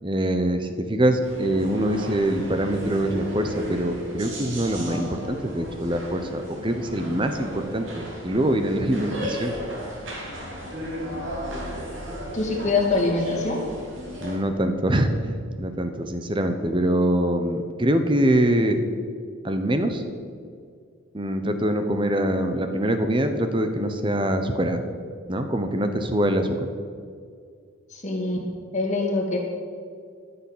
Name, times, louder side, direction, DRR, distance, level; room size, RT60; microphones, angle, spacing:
voice 1, 0.0-9.5 14.2-18.8 19.4-20.0 21.1-24.8 25.3-26.6, right 1 dB, 25° right, 7 dB, 0.8 m, -24 dB
sound 1, 1.2-14.4, equal, 65° right, 3.0 m, -35 dB
voice 2, 12.3-13.6 27.9-28.5 28.7-29.4, left 3 dB, 35° left, 0 dB, 2.2 m, -24 dB
13.5 x 6.9 x 7.3 m, 2.2 s
head